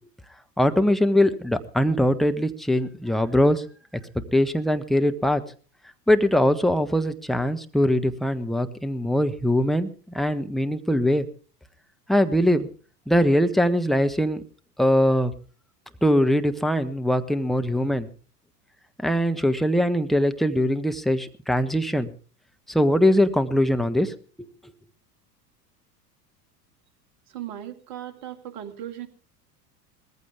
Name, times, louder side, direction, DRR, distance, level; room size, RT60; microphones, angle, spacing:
voice 1, 0.6-3.6 4.3-5.4 6.1-11.3 12.1-12.7 13.1-14.4 14.8-15.3 16.0-18.1 19.0-22.1 22.7-24.1 24.4-24.5, left 1 dB, ahead, 8 dB, 1.3 m, -22 dB
voice 2, 27.3-29.1, right 11 dB, 55° right, 8 dB, 2.6 m, -37 dB
20.5 x 15.0 x 3.6 m, 0.39 s
hypercardioid pair, 80°, 48 cm